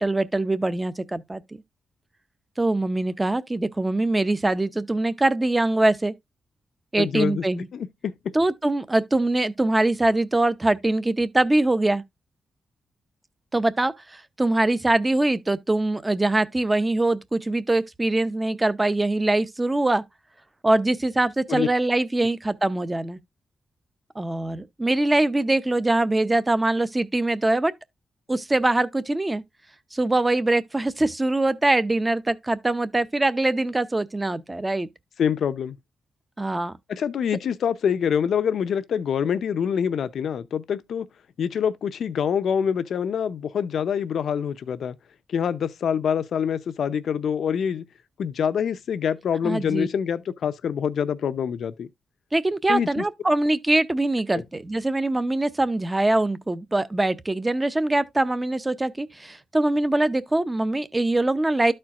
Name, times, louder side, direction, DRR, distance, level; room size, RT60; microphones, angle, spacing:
voice 1, 0.0-1.4 2.6-6.1 6.9-7.7 8.3-12.0 13.5-20.0 20.6-23.2 24.2-27.7 28.3-29.4 29.9-34.9 36.4-36.7 49.4-49.9 52.3-61.7, right 2 dB, 15° right, 0.6 m, -23 dB
voice 2, 7.0-7.4 7.7-8.1 21.5-21.7 35.2-35.8 36.9-41.1 41.4-45.0 45.3-47.9 48.2-51.9 52.7-53.0 54.3-54.4, left 7 dB, 70° left, 0.6 m, -25 dB
13.0 x 4.4 x 2.4 m
wide cardioid pair, 130°, 0 cm